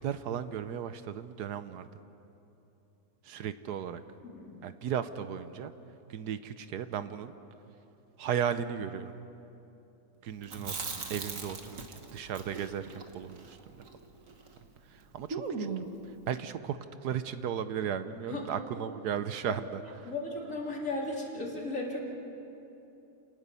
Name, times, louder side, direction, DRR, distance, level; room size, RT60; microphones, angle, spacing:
voice 1, 0.0-1.9 3.2-4.0 4.6-5.7 6.1-7.3 8.2-9.1 10.2-13.8 14.9-20.1, right 8 dB, 75° right, 11 dB, 1.3 m, -36 dB
voice 2, 4.2-4.5 18.3-18.9 19.5-19.6 20.0-22.0, left 2 dB, 50° left, -2 dB, 3.7 m, -36 dB
Chewing mastication, 10.4-14.6 14.9-15.0 15.3-16.0, right 4 dB, 50° right, 1.9 m, -39 dB
29.0 x 19.0 x 6.9 m, 2.9 s
omnidirectional pair, 1.8 m